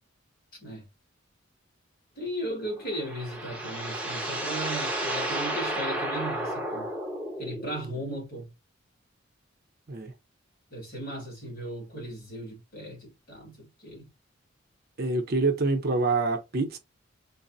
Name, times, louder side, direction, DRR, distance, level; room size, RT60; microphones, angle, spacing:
voice 1, 2.2-6.9 7.4-8.5 10.7-14.1, right 1 dB, 50° left, 1.7 m, -37 dB
sound 1, 2.7-7.9, right 1 dB, 5° right, 0.6 m, -32 dB
voice 2, 15.0-16.8, right 3 dB, 50° right, 0.6 m, -26 dB
3.9 x 2.0 x 2.5 m
head